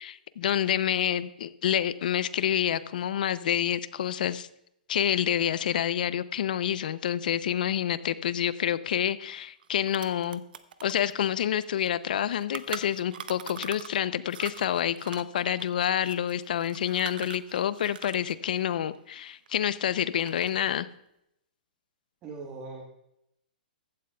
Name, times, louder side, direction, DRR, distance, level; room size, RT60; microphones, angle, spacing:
voice 1, 0.0-4.5 4.9-10.4 10.8-20.9, left 10 dB, 60° left, 15 dB, 0.6 m, -28 dB
sound 1, 9.3-9.4 9.6-14.0 14.3-18.3 18.6-19.7 20.1-20.7, right 8 dB, 70° right, 0.8 m, -43 dB
voice 2, 22.2-22.8, right 4 dB, 25° right, 0 dB, 1.4 m, -40 dB
15.0 x 12.0 x 2.3 m, 0.79 s
hypercardioid pair, 155°, 5 cm